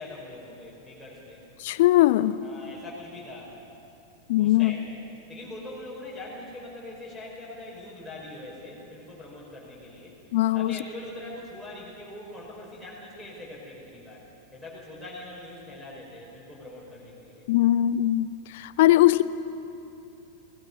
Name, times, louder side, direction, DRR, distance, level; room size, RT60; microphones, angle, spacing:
voice 1, 0.0-1.4 2.4-3.5 4.4-5.0 5.3-10.2 10.5-14.2 14.5-17.5, left 2 dB, ahead, -8 dB, 5.3 m, -42 dB
voice 2, 1.6-2.4 4.3-4.7 10.3-10.8 17.5-19.2, left 15 dB, 50° left, 16 dB, 0.5 m, -20 dB
21.0 x 17.5 x 9.5 m, 2.8 s
figure-of-eight pair, 90°, 0 cm